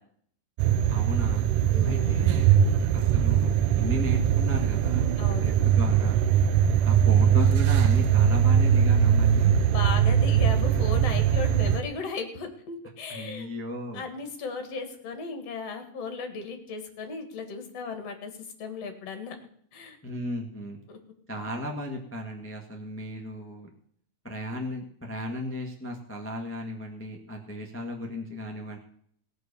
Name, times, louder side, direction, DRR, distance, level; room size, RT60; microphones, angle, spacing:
sound 1, 0.6-11.8, right 9 dB, 85° right, 2.3 m, -21 dB
voice 1, 0.9-1.5 1.8-2.5 2.9-6.1 6.8-9.5 13.1-14.1 20.0-20.8 21.3-23.7 24.2-28.8, left 1 dB, 10° left, 1 dB, 0.7 m, -35 dB
voice 2, 1.7-2.4 5.2-5.6 9.6-13.5 13.9-18.3 18.6-19.4 19.7-20.0 20.9-21.0, left 4 dB, 55° left, 6 dB, 2.7 m, -36 dB
17.5 x 6.3 x 6.8 m, 0.64 s
omnidirectional pair, 3.7 m